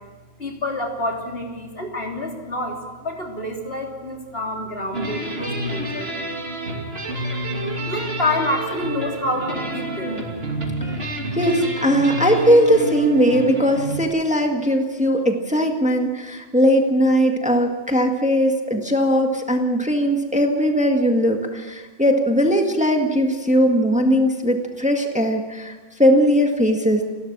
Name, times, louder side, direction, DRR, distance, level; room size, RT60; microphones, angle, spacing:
voice 1, 0.4-6.1 7.8-10.2, left 1 dB, 65° left, 1 dB, 3.5 m, -27 dB
sound 1, 4.9-14.0, right 1 dB, 65° right, 3.0 m, -28 dB
voice 2, 11.3-25.7 26.0-27.0, equal, 5° right, 3 dB, 1.8 m, -19 dB
30.0 x 13.0 x 7.4 m, 1.3 s
omnidirectional pair, 1.1 m